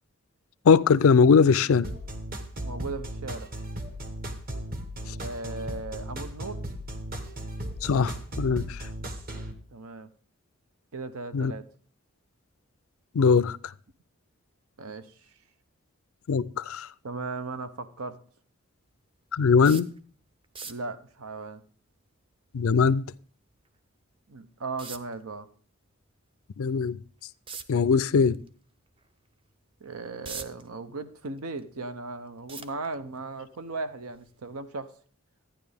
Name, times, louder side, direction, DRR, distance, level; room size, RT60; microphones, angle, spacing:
voice 1, 0.7-1.9 7.8-8.8 11.3-11.5 13.1-13.6 16.3-16.9 19.3-19.9 22.5-23.1 26.6-27.0 27.7-28.4, left 5 dB, 75° left, 0.4 m, -21 dB
sound 1, 1.8-9.5, right 1 dB, 40° right, 1.2 m, -36 dB
voice 2, 2.6-3.5 5.2-6.6 9.7-10.1 10.9-11.7 14.8-15.1 17.0-18.2 20.6-21.6 24.3-25.5 29.8-34.9, right 3 dB, 85° right, 0.9 m, -37 dB
sound 2, 19.6-20.0 20.4-20.9 23.7-23.8 24.8-25.2 27.5-27.8 28.3-28.5 29.0-29.1 29.8-30.7 31.1-31.9 32.5-33.2 34.1-34.3 34.6-34.7, right 5 dB, 25° right, 0.5 m, -40 dB
12.0 x 9.9 x 3.4 m
head